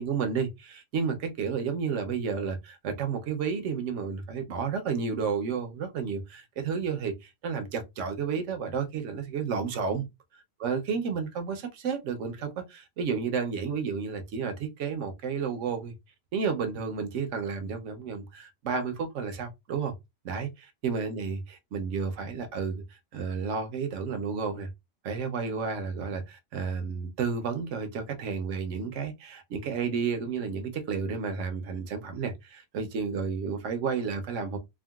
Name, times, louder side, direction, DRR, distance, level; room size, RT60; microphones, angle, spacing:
voice 1, 0.0-10.0 10.6-15.9 16.3-19.9 20.2-22.8 23.1-24.7 25.0-34.6, right 5 dB, 60° right, 0.9 m, -31 dB
3.6 x 2.1 x 2.3 m
omnidirectional pair, 1.6 m